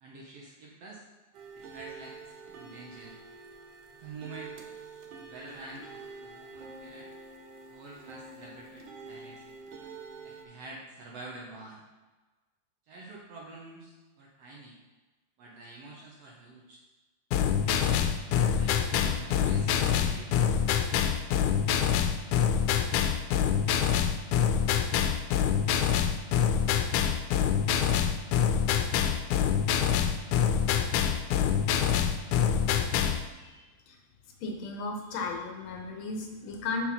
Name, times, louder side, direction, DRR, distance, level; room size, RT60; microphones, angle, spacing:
voice 1, 0.0-1.0 1.6-3.2 3.9-4.5 5.2-7.1 7.6-9.6 10.2-11.8 12.9-14.8 15.4-16.8 17.6-19.7 20.0-20.8, right 2 dB, 65° right, -3 dB, 1.7 m, -47 dB
sound 1, 1.3-10.4, right 4 dB, 80° right, 1.3 m, -47 dB
sound 2, 17.3-33.2, left 8 dB, 85° left, 2.0 m, -26 dB
voice 2, 34.4-36.9, left 3 dB, 65° left, 2 dB, 1.9 m, -35 dB
6.1 x 4.5 x 5.7 m, 1.2 s
omnidirectional pair, 3.6 m